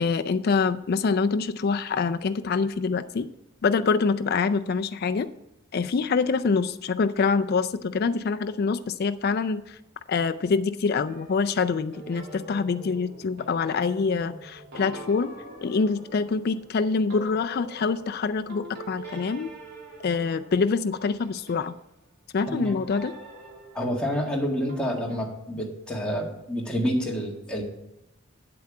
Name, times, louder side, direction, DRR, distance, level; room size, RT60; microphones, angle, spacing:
voice 1, 0.0-3.3 3.6-5.3 5.7-9.8 10.1-15.3 15.6-19.5 20.0-21.8 22.3-23.1, left 4 dB, 50° left, 9 dB, 0.4 m, -25 dB
sound 1, 11.1-21.7 22.4-25.2, right 1 dB, 50° right, 2.7 m, -44 dB
voice 2, 23.7-27.6, equal, 5° left, -2 dB, 1.7 m, -28 dB
8.6 x 7.8 x 4.8 m, 0.88 s
head